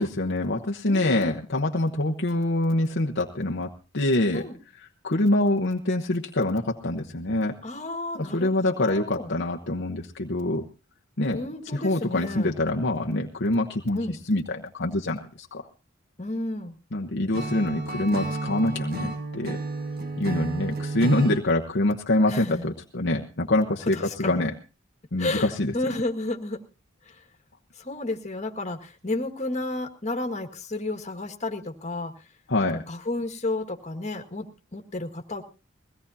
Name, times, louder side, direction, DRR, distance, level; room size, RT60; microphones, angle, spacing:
voice 1, 0.0-4.4 5.0-7.5 8.3-10.6 11.2-11.4 11.7-14.0 14.3-15.6 16.9-19.6 20.2-24.5 25.1-25.7 32.5-32.8, left 1 dB, 55° left, 1 dB, 1.0 m, -25 dB
voice 2, 0.9-1.4 4.3-4.6 7.6-9.3 11.3-12.6 13.9-14.2 16.2-16.7 22.3-22.7 23.9-24.4 25.2-26.6 27.0-27.2 27.8-32.2 32.7-34.5 34.7-35.4, left 2 dB, 35° left, 3 dB, 1.8 m, -32 dB
Acoustic guitar / Strum, 17.3-21.4, right 3 dB, 45° right, 1.5 m, -31 dB
22.0 x 17.0 x 2.8 m, 0.33 s
head